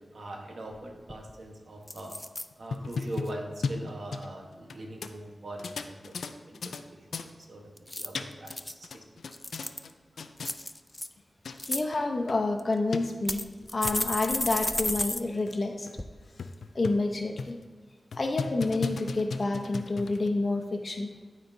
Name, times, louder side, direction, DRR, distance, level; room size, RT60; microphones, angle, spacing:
voice 1, 0.0-2.2 2.6-6.1 6.5-6.7 7.5-7.7 8.0-8.7, right 1 dB, 70° right, 1 dB, 1.2 m, -41 dB
sound 1, 1.1-1.4 1.9-2.5 2.9-3.3 7.8-8.7 9.3-9.9 10.4-11.1 11.5-11.8 12.6-12.7 13.3-15.2 15.5-15.6 16.0-16.1, left 1 dB, 20° left, 0.4 m, -33 dB
sound 2, 2.5-4.8 5.0-5.1 5.6-6.8 7.1-7.3 7.9-8.6 8.8-9.9 10.2-10.5 11.2-11.3 11.5-11.6 11.9-12.0 12.3-12.4 12.9-13.0 13.6-14.0 14.5-14.6 14.9-15.0 15.5-15.6 15.9-16.0 16.4-17.1 17.4-17.6 18.1-20.3, left 4 dB, 90° left, 0.4 m, -36 dB
voice 2, 11.7-13.4 13.7-15.9 16.7-17.6 18.2-21.1, left 2 dB, 50° left, 3 dB, 0.9 m, -28 dB
12.5 x 4.3 x 2.7 m, 1.4 s
cardioid pair, 55°, 0 cm